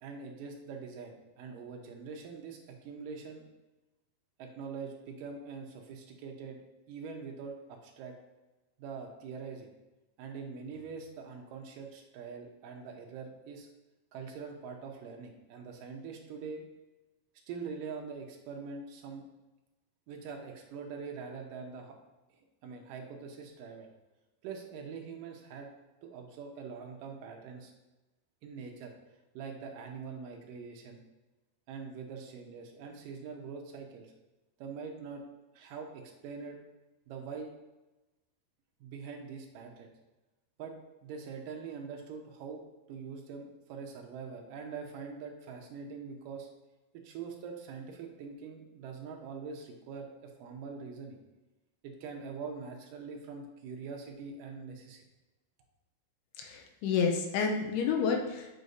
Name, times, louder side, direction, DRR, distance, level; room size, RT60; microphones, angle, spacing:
voice 1, 0.0-3.4 4.4-6.6 6.9-8.1 8.8-9.7 10.2-13.7 14.1-16.6 17.5-19.2 20.1-22.0 22.6-23.9 24.4-25.7 26.0-27.7 28.4-28.9 29.3-31.0 31.7-34.1 34.6-35.2 35.5-36.6 37.1-37.5 38.8-39.9 40.6-40.8 41.0-42.6 42.9-46.5 46.9-51.2 51.8-55.0, right 5 dB, 75° right, 2 dB, 2.2 m, -43 dB
voice 2, 56.4-58.5, left 6 dB, 85° left, 2 dB, 2.7 m, -30 dB
7.8 x 5.5 x 2.7 m, 1.1 s
omnidirectional pair, 4.4 m